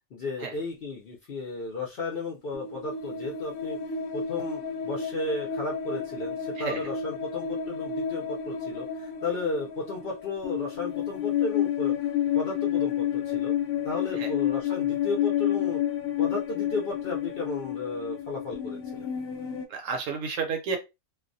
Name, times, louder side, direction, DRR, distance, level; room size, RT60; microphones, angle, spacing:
voice 1, 0.1-3.8 4.1-11.9 12.3-13.5 13.8-15.8 16.2-19.1, left 3 dB, 55° left, -2 dB, 0.6 m, -34 dB
sound 1, 2.5-19.6, left 9 dB, 85° left, 1.0 m, -30 dB
voice 2, 6.6-6.9 14.2-14.3 19.7-20.8, right 5 dB, 70° right, 5 dB, 0.9 m, -31 dB
2.3 x 2.1 x 2.5 m, 0.24 s
omnidirectional pair, 1.5 m